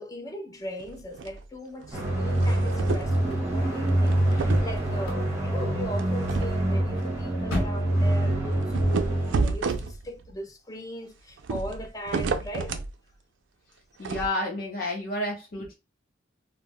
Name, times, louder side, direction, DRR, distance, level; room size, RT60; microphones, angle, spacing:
voice 1, 0.0-12.8, equal, 20° left, 0.4 m, -39 dB
sound 1, 0.8-1.4 1.8-3.2 3.9-5.1 5.9-6.6 7.0-7.1 7.5-7.6 8.6-10.3 11.4-12.9 14.0-14.3, right 4 dB, 70° right, 0.4 m, -31 dB
sound 2, 1.9-9.4, right 1 dB, 15° right, 0.7 m, -25 dB
sound 3, 2.7-8.6, left 1 dB, 80° left, 0.6 m, -40 dB
voice 2, 14.0-15.8, left 1 dB, 50° left, 0.8 m, -30 dB
2.2 x 2.0 x 3.5 m
head